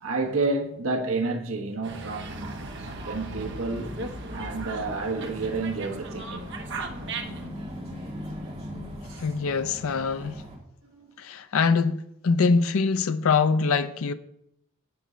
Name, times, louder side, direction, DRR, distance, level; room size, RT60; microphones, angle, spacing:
voice 1, 0.0-2.7 3.0-4.0 4.3-6.4 9.0-9.2 10.9-11.1, right 3 dB, 70° right, 1.2 m, -30 dB
Dog, 1.8-7.5, right 3 dB, 50° right, 0.9 m, -38 dB
sound 1, 2.3-10.6, equal, 30° right, 1.7 m, -40 dB
voice 2, 9.2-10.4 11.2-14.1, left 4 dB, 70° left, 0.5 m, -24 dB
8.0 x 6.9 x 5.0 m
head